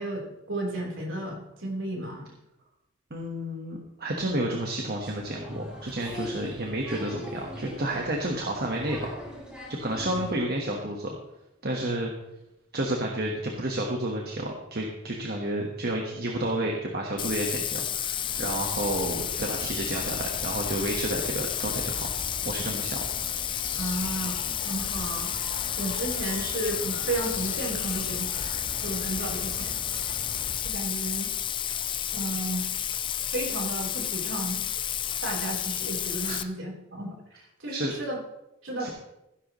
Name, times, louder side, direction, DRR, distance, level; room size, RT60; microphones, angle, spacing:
voice 1, 0.0-2.3 23.8-25.4 25.8-28.4 28.8-29.8 30.6-31.3 32.1-32.7 33.3-34.6 35.2-38.2 38.6-38.9, right 1 dB, 65° right, -1 dB, 3.9 m, -33 dB
voice 2, 3.1-9.1 9.8-11.2 11.6-12.1 12.7-22.1 22.4-23.0 36.2-36.4 37.7-37.9 38.8-38.9, right 1 dB, 50° right, 0 dB, 1.4 m, -30 dB
Applause, 5.0-10.4, left 1 dB, 5° right, 2.6 m, -40 dB
Bathtub (filling or washing), 17.2-36.4, left 9 dB, 25° left, 0.3 m, -31 dB
sound 1, 18.2-30.6, left 2 dB, 85° left, 3.4 m, -41 dB
16.0 x 11.0 x 3.1 m, 0.89 s
head